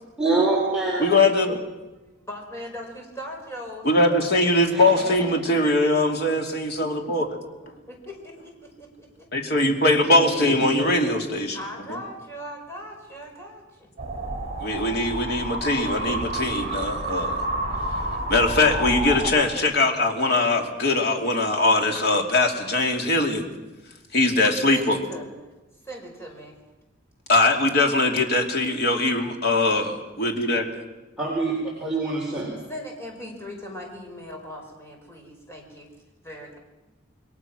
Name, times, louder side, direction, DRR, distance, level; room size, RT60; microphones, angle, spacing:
voice 1, 0.2-1.0 1.5-1.6 4.7-4.8 10.1-10.8 31.2-31.5 31.8-32.5, right 3 dB, 5° right, -5 dB, 4.6 m, -25 dB
voice 2, 1.0-1.6 3.8-7.4 9.3-11.6 11.9-12.0 14.6-17.5 18.3-23.5 24.1-25.0 27.3-30.7, left 2 dB, 50° left, 2 dB, 2.9 m, -21 dB
voice 3, 2.2-4.2 5.5-5.9 7.9-9.3 11.5-13.9 24.4-25.4 25.8-26.5 32.0-32.1 32.7-35.9 36.2-36.6, equal, 15° left, 0 dB, 5.1 m, -39 dB
sound 1, 14.0-19.3, right 1 dB, 35° right, 5.9 m, -29 dB
27.5 x 21.5 x 6.2 m, 1.1 s
head